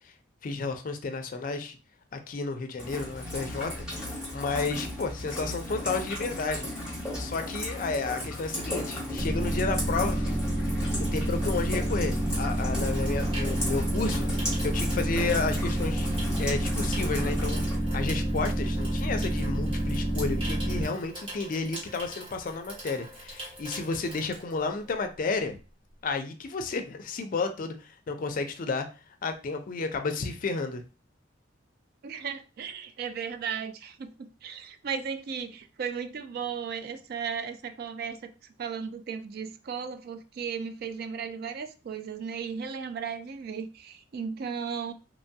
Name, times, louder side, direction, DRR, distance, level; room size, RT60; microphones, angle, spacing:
voice 1, 0.4-1.8 2.1-3.7 4.3-6.7 7.2-10.4 10.8-14.2 14.6-17.6 17.9-25.6 26.0-28.9 29.2-30.8, left 3 dB, 45° left, 0.4 m, -32 dB
Rain, 2.8-17.8, left 1 dB, 5° right, 1.0 m, -36 dB
sound 1, 9.2-20.8, right 1 dB, 85° right, 1.5 m, -28 dB
Water tap faucet / Sink (filling or washing), 10.6-25.1 25.4-25.7, right 1 dB, 25° right, 1.1 m, -44 dB
voice 2, 32.0-38.3 38.6-44.9, right 6 dB, 55° right, 0.3 m, -35 dB
3.0 x 2.2 x 2.6 m
head